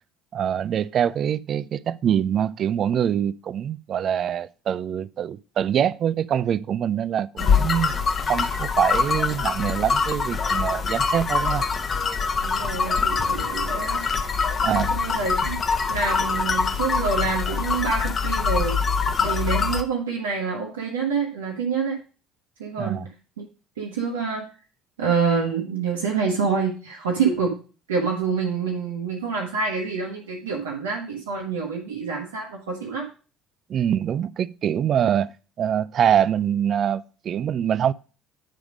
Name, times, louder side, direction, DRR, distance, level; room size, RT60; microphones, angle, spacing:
voice 1, 0.3-8.0 8.3-11.6 14.6-14.9 22.8-23.1 33.7-35.3 35.6-37.9, right 9 dB, 50° right, 0.3 m, -24 dB
sound 1, 7.4-19.8, left 5 dB, 40° left, 0.8 m, -24 dB
voice 2, 7.4-7.7 12.4-14.0 14.6-15.6 15.9-18.8 19.2-22.0 22.6-23.0 23.4-23.5 23.8-24.4 25.0-27.6 27.9-33.1, right 5 dB, 85° right, 1.0 m, -27 dB
8.9 x 3.5 x 5.0 m
hypercardioid pair, 60°, 0 cm